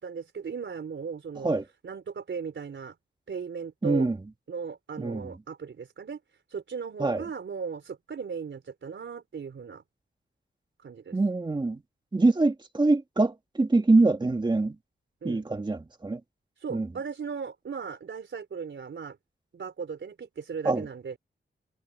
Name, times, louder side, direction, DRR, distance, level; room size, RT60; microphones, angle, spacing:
voice 1, 0.0-1.5 1.8-2.9 3.3-4.1 4.5-6.2 6.5-9.8 10.8-11.2 15.2-15.4 16.6-19.2 19.5-21.2, right 6 dB, 70° right, 4.2 m, -37 dB
voice 2, 3.8-4.2 5.0-5.3 7.0-7.2 11.1-11.8 12.1-14.7 15.2-16.2 16.7-16.9 20.6-20.9, right 3 dB, 20° right, 1.7 m, -24 dB
wide cardioid pair, 155°, 20 cm